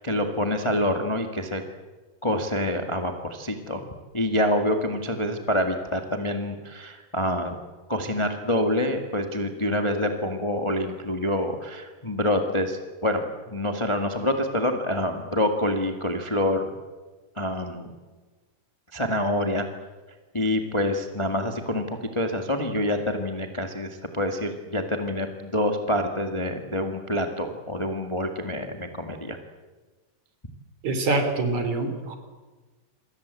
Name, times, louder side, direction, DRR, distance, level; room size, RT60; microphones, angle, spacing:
voice 1, 0.0-1.6 2.2-3.9 4.1-7.6 7.9-13.2 13.5-16.6 17.4-17.9 18.9-19.6 20.3-21.8 22.1-29.4, left 1 dB, 25° left, 5 dB, 0.6 m, -26 dB
voice 2, 30.8-32.2, right 3 dB, 45° right, 7 dB, 4.4 m, -25 dB
28.0 x 23.0 x 8.4 m, 1.3 s
omnidirectional pair, 4.6 m